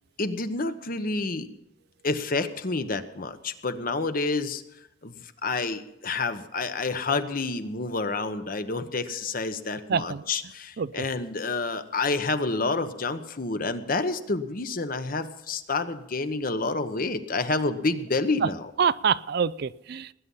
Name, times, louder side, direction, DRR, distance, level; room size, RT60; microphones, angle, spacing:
voice 1, 0.2-1.5 2.0-4.6 5.0-18.7, left 3 dB, 45° left, 10 dB, 1.1 m, -29 dB
voice 2, 9.9-10.2 10.8-10.9 18.4-18.5 18.8-20.1, right 6 dB, 55° right, 18 dB, 0.4 m, -25 dB
19.5 x 9.9 x 5.6 m, 0.89 s
head